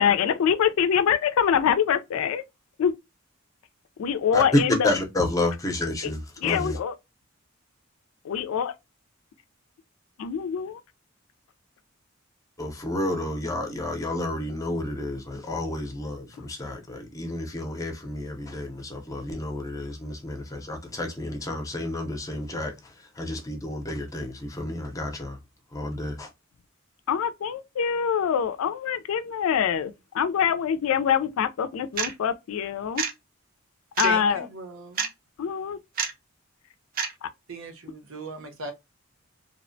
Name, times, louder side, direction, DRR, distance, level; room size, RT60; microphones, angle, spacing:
voice 1, 0.0-2.4 2.8-2.9 4.0-4.9 6.4-6.9 8.2-8.7 10.2-10.8 27.1-33.0 34.0-34.5 35.4-35.8 37.2-37.3, left 8 dB, 90° left, 0.3 m, -24 dB
voice 2, 4.3-6.8 12.6-25.4 25.7-26.3, left 1 dB, 15° left, 0.5 m, -30 dB
sound 1, 32.0-32.1 33.0-33.1 34.0-34.1 35.0-35.1 36.0-36.1 37.0-37.1, right 6 dB, 45° right, 0.5 m, -26 dB
voice 3, 34.0-35.1 37.5-38.7, right 3 dB, 75° right, 0.8 m, -37 dB
2.7 x 2.1 x 2.5 m
head